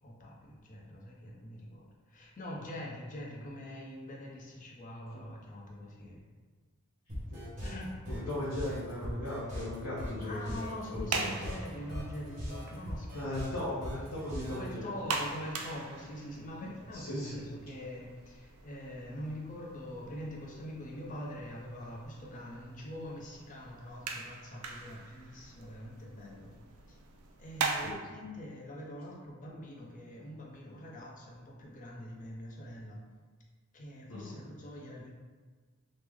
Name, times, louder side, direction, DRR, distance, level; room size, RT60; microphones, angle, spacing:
voice 1, 0.0-6.2 7.6-7.9 10.2-13.6 14.5-26.5 26.9-27.0 27.4-33.0 33.7-35.1, left 1 dB, 35° left, -3 dB, 0.5 m, -44 dB
sound 1, 7.1-14.7, equal, 35° right, 0.9 m, -40 dB
voice 2, 8.1-10.6 10.9-11.5 13.1-14.9 16.9-17.4 27.8-27.9 34.1-34.4, left 1 dB, 75° left, -8 dB, 0.7 m, -37 dB
sound 2, 10.8-27.9, right 4 dB, 80° right, 0.4 m, -42 dB
3.1 x 2.0 x 3.4 m, 1.5 s
head